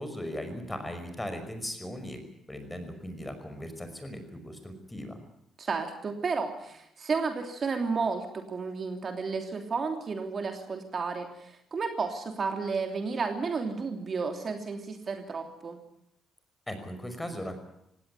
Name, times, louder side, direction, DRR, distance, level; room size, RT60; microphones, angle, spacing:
voice 1, 0.0-2.2 2.5-5.2 16.7-17.6, equal, 10° left, 7 dB, 5.6 m, -38 dB
voice 2, 5.6-15.8, right 4 dB, 45° right, 5 dB, 3.1 m, -32 dB
19.0 x 17.5 x 9.8 m, 0.79 s
cardioid pair, 90°, 0 cm